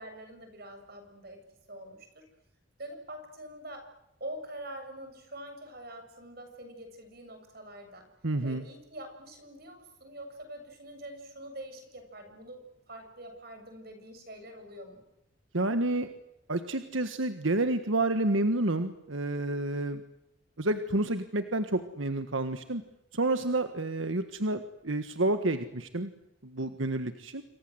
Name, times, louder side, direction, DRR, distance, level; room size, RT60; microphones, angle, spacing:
voice 1, 0.0-1.4 1.7-2.2 2.8-3.9 4.2-8.1 8.4-15.0 23.4-23.5, right 1 dB, 50° right, 6 dB, 7.4 m, -45 dB
voice 2, 8.2-8.6 15.5-16.1 16.5-20.0 20.6-22.8 23.1-26.1 26.4-27.4, right 2 dB, 90° right, 9 dB, 1.5 m, -29 dB
28.0 x 23.5 x 8.0 m, 0.86 s
head